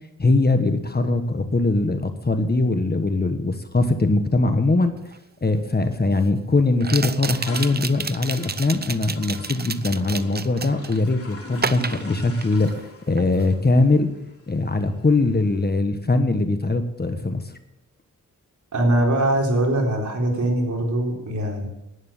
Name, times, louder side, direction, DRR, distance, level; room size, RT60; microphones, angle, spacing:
voice 1, 0.2-4.9 5.4-12.7 13.1-14.1 14.5-17.4, left 2 dB, 30° left, 8 dB, 1.4 m, -21 dB
sound 1, 5.1-5.2 6.8-11.0 11.6-12.9 13.2-13.5, right 5 dB, 30° right, 0.7 m, -30 dB
sound 2, 7.4-15.7, left 3 dB, 45° left, 3.3 m, -43 dB
voice 2, 18.7-21.7, right 1 dB, 60° right, 0 dB, 4.0 m, -22 dB
11.0 x 9.5 x 7.4 m, 0.86 s
cardioid pair, 70°, 32 cm